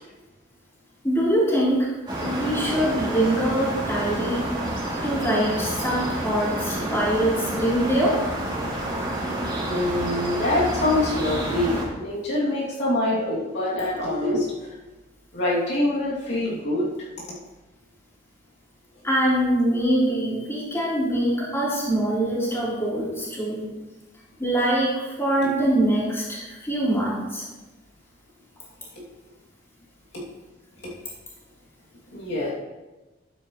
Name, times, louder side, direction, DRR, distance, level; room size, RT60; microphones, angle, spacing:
voice 1, 1.0-1.9 2.2-4.5 5.0-8.2 19.0-23.7 24.4-27.4, right 1 dB, 15° left, -7 dB, 3.7 m, -23 dB
sound 1, 2.1-11.9, right 1 dB, 25° right, 2.8 m, -29 dB
voice 2, 9.7-14.7 15.3-16.9 30.1-30.2 32.1-32.5, left 1 dB, 65° left, -7 dB, 2.8 m, -25 dB
12.0 x 9.4 x 3.2 m, 1.1 s
head